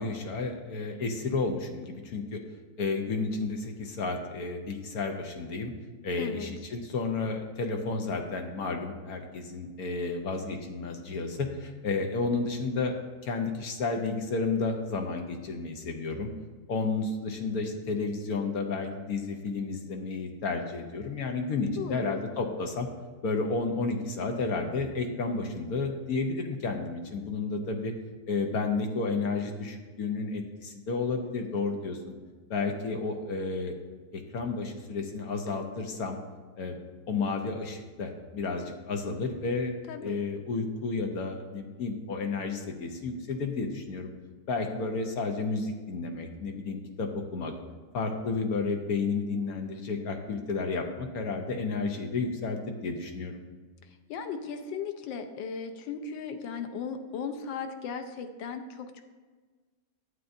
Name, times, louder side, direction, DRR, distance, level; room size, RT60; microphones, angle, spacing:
voice 1, 0.0-2.4 2.8-5.7 6.0-13.0 13.2-16.3 16.7-22.9 23.2-27.9 28.3-32.1 32.5-33.7 34.1-36.2 36.6-36.8 37.1-39.7 40.0-44.1 44.5-47.5 47.9-53.4, left 4 dB, 60° left, 4 dB, 1.1 m, -31 dB
voice 2, 21.8-22.2 39.9-40.2 54.1-59.0, left 6 dB, 90° left, 6 dB, 1.4 m, -36 dB
11.0 x 8.2 x 2.6 m, 1.4 s
omnidirectional pair, 2.0 m